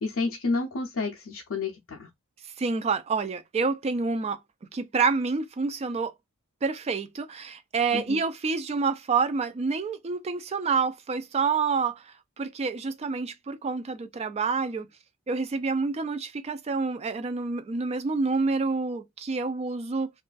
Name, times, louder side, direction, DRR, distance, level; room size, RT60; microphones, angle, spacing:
voice 1, 0.0-2.1 7.9-8.2, left 3 dB, 70° left, 0.5 m, -30 dB
voice 2, 2.6-4.4 4.7-6.1 6.6-14.9 15.3-20.1, right 4 dB, 30° right, 0.3 m, -28 dB
2.5 x 2.3 x 2.3 m
head